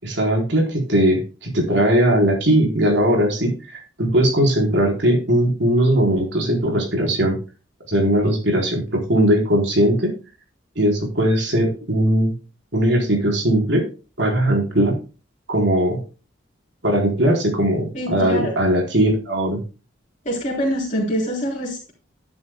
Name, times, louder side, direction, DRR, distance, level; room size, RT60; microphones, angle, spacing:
voice 1, 0.0-7.4 7.9-10.1 10.8-12.3 12.7-13.8 14.2-15.0 15.5-16.0 16.8-19.6, right 1 dB, 65° right, 1 dB, 4.2 m, -19 dB
voice 2, 17.9-18.5 20.2-21.9, equal, 40° left, -4 dB, 3.5 m, -24 dB
11.0 x 10.5 x 2.2 m, 0.33 s
head